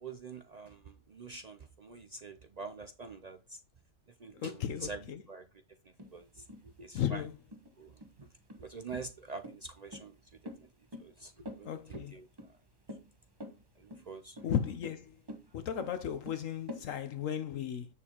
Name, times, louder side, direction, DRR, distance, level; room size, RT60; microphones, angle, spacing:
voice 1, 0.0-3.6 4.2-5.4 6.1-6.5 6.8-7.2 7.8-8.3 8.6-10.2 11.0-12.3 13.8-14.4, right 4 dB, 60° right, 0.4 m, -45 dB
voice 2, 4.3-5.2 6.9-7.3 11.6-12.1 14.4-15.1 15.5-17.9, left 9 dB, 75° left, 1.0 m, -35 dB
sound 1, 6.0-16.8, left 1 dB, 20° right, 0.9 m, -48 dB
8.3 x 7.0 x 2.9 m
omnidirectional pair, 1.4 m